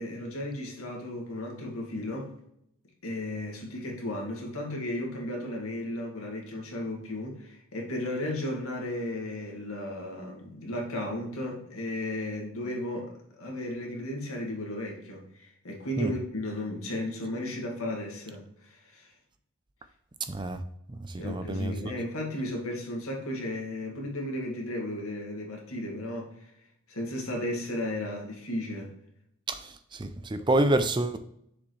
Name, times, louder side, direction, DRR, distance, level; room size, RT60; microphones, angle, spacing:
voice 1, 0.0-2.3 3.0-19.1 21.2-26.5 26.9-28.9, left 1 dB, 80° left, 0 dB, 2.0 m, -34 dB
voice 2, 20.3-20.6 21.1-21.9 29.5-31.2, right 2 dB, 20° right, 10 dB, 0.4 m, -28 dB
7.0 x 5.0 x 3.1 m, 0.75 s
head